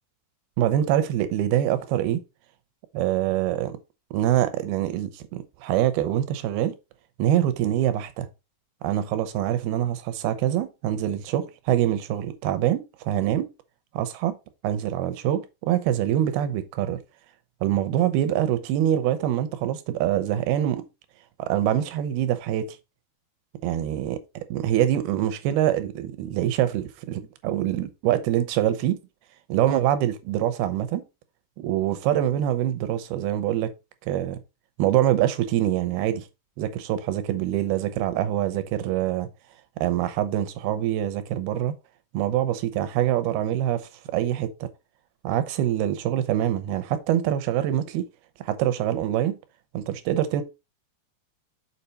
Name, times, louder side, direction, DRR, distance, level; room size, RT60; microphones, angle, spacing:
voice 1, 0.6-2.2 2.9-3.8 4.1-6.8 7.2-8.3 8.8-13.5 13.9-14.4 14.6-17.0 17.6-20.8 21.4-22.8 23.6-24.2 24.5-29.0 29.5-31.0 31.6-33.7 34.1-34.4 34.8-36.3 36.6-39.3 39.8-41.7 42.1-44.7 45.2-48.1 48.4-49.4 49.7-50.4, right 12 dB, 80° right, 2.7 m, -25 dB
6.8 x 5.0 x 4.0 m
omnidirectional pair, 4.6 m